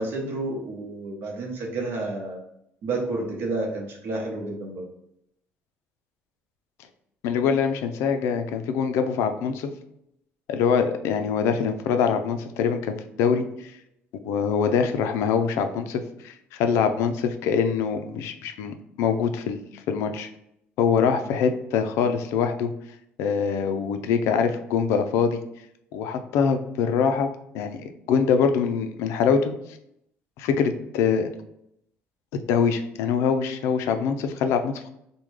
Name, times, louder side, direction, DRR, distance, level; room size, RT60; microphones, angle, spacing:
voice 1, 0.0-2.4 2.8-4.8, right 2 dB, 55° right, 0 dB, 0.9 m, -30 dB
voice 2, 7.2-9.7 10.5-13.7 14.1-19.6 19.9-20.3 20.8-22.7 23.2-25.4 25.9-27.3 27.5-29.5 30.4-31.3 32.3-34.9, left 6 dB, 80° left, 7 dB, 0.4 m, -24 dB
3.5 x 2.2 x 3.2 m, 0.77 s
cardioid pair, 170°, 5 cm